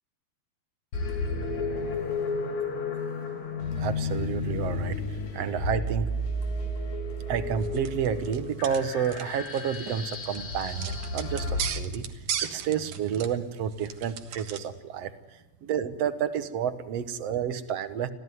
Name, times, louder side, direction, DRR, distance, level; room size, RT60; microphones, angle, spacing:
sound 1, 0.9-11.6, left 2 dB, 75° left, 4.1 m, -32 dB
voice 1, 3.8-5.0 5.3-6.1 7.3-12.1 12.4-15.1 15.6-18.1, right 8 dB, 65° right, 12 dB, 2.2 m, -30 dB
sound 2, 7.6-14.7, right 9 dB, 85° right, 2.9 m, -38 dB
26.0 x 16.0 x 9.5 m, 1.2 s
omnidirectional pair, 3.3 m